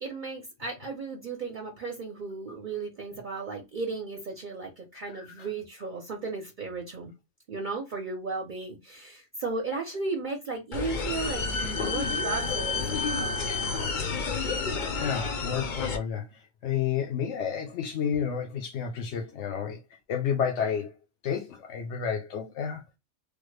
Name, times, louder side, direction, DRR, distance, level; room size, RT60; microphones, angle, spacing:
voice 1, 0.0-7.1 7.5-13.4, right 3 dB, 50° right, 0.8 m, -35 dB
voice 2, 5.1-5.5 11.6-11.7 15.0-19.8 20.1-20.9 21.2-22.8, left 7 dB, 80° left, 1.0 m, -31 dB
sound 1, 10.7-16.0, left 4 dB, 50° left, 0.7 m, -30 dB
3.4 x 2.1 x 3.1 m
omnidirectional pair, 1.2 m